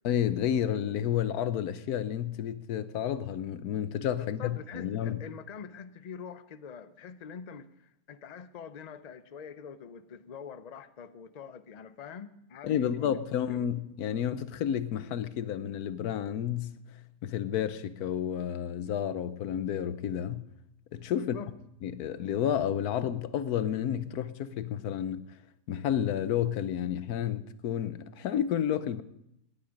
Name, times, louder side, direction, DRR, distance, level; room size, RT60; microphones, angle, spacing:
voice 1, 0.0-5.2 12.6-16.8 17.2-20.4 20.9-21.4 21.8-25.3 25.7-29.0, left 9 dB, 80° left, 1.3 m, -31 dB
voice 2, 4.2-13.7 21.2-21.5, left 6 dB, 45° left, 0.5 m, -45 dB
18.5 x 10.5 x 5.1 m
omnidirectional pair, 1.6 m